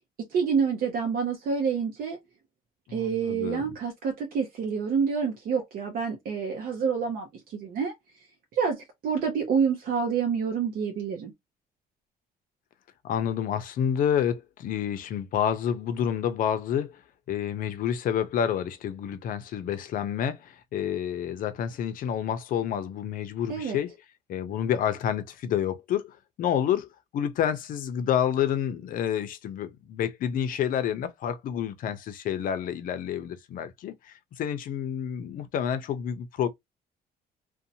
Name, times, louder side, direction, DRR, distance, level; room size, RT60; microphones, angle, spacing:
voice 1, 0.3-2.2 2.9-7.9 8.5-11.3 23.5-23.8, right 6 dB, 60° right, 0.7 m, -28 dB
voice 2, 2.9-3.6 13.0-17.0 17.3-23.9 24.3-36.5, left 9 dB, 55° left, 0.5 m, -29 dB
2.6 x 2.1 x 2.7 m
cardioid pair, 155°, 17 cm